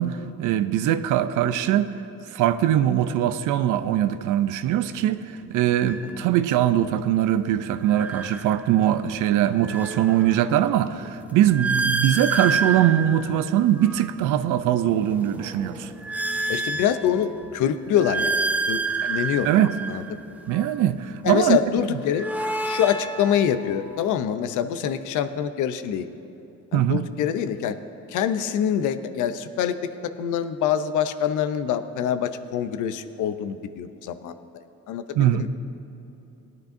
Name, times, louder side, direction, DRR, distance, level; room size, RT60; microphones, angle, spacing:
voice 1, 0.0-1.9 2.3-5.2 5.5-15.9 19.4-19.7 20.5-21.6 26.7-27.0 35.2-35.5, right 11 dB, 90° right, 12 dB, 0.5 m, -21 dB
sound 1, 4.7-17.5, right 2 dB, 40° right, 2.4 m, -47 dB
sound 2, 5.9-6.1 7.8-9.0 9.4-14.2 14.8-17.4 17.9-20.8 21.8-24.1, right 3 dB, 5° right, 0.7 m, -29 dB
voice 2, 16.5-18.3 18.7-18.8 19.1-19.5 19.9-20.2 21.2-22.3 22.6-26.1 26.7-27.8 28.1-35.5, left 9 dB, 85° left, 11 dB, 0.6 m, -25 dB
18.0 x 10.5 x 2.6 m, 2.9 s
cardioid pair, 90°, 30 cm